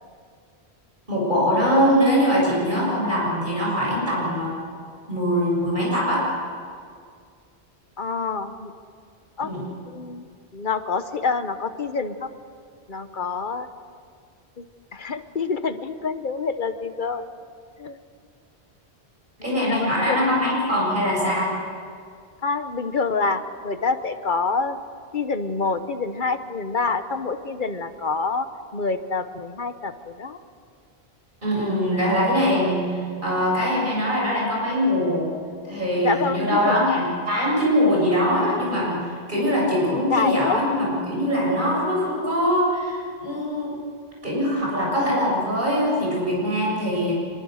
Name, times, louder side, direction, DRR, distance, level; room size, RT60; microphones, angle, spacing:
voice 1, 1.1-4.5 5.1-6.2 9.4-9.6 19.4-21.5 31.4-35.3 35.6-43.7 44.2-47.1, equal, 50° right, -4 dB, 7.3 m, -22 dB
voice 2, 8.0-8.7 9.4-9.5 9.9-12.3 12.9-13.7 14.6-14.7 14.9-17.3 17.8-18.0 19.7-20.2 22.4-24.8 25.1-28.5 28.7-30.4 36.0-37.0 39.9-40.6, left 4 dB, 50° left, 10 dB, 1.2 m, -27 dB
25.0 x 22.5 x 6.5 m, 2.2 s
omnidirectional pair, 1.1 m